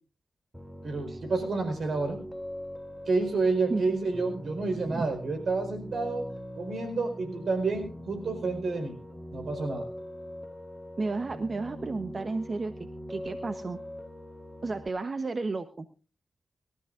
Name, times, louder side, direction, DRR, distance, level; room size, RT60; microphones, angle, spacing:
Piano, 0.5-14.9, equal, 10° right, 2.2 m, -42 dB
voice 1, 0.8-2.2 3.1-9.0 9.3-9.9, right 3 dB, 75° right, 6 dB, 4.6 m, -29 dB
voice 2, 11.0-12.7 13.1-13.8 14.6-15.9, right 3 dB, 55° right, 10 dB, 1.0 m, -32 dB
25.0 x 13.5 x 2.6 m, 0.33 s
cardioid pair, 45°, 0 cm